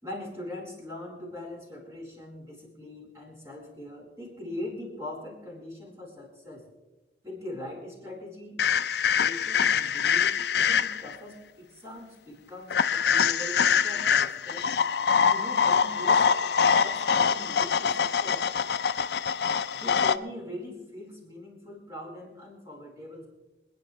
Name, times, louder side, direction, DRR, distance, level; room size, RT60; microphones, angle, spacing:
voice 1, 0.0-6.6 7.2-8.6 9.2-14.6 15.1-18.4 19.7-23.3, left 1 dB, 15° right, -4 dB, 4.5 m, -41 dB
sound 1, 8.6-11.2 12.7-20.2, left 7 dB, 70° left, 0.5 m, -24 dB
27.0 x 10.0 x 3.2 m, 1.1 s
head